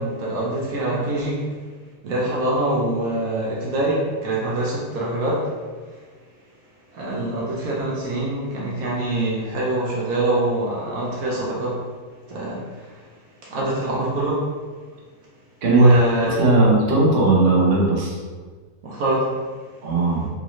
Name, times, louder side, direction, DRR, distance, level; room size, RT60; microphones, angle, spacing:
voice 1, 0.0-1.4 2.0-5.5 6.9-11.9 12.3-12.6 13.4-14.5 15.7-16.6 18.8-19.3, right 1 dB, 70° right, -4 dB, 1.1 m, -24 dB
voice 2, 15.6-16.0 16.3-18.2 19.8-20.3, right 2 dB, 50° right, -4 dB, 0.9 m, -17 dB
3.9 x 2.6 x 3.0 m, 1.4 s
omnidirectional pair, 1.6 m